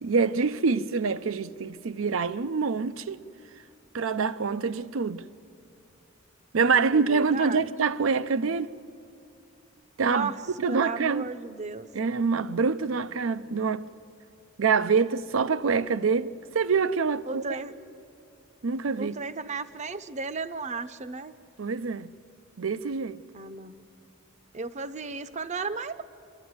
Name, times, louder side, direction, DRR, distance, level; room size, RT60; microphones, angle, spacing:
voice 1, 0.0-3.2 3.9-5.2 6.5-8.8 10.0-10.3 10.6-11.3 11.9-13.9 14.6-17.6 18.6-19.1 21.6-22.1 22.6-23.2, right 5 dB, 90° right, 0.6 m, -26 dB
voice 2, 6.9-7.7 10.0-10.4 10.7-11.9 17.2-17.7 18.9-21.3 23.3-23.8 24.5-26.0, right 4 dB, 35° right, 0.7 m, -34 dB
25.5 x 12.0 x 9.5 m
head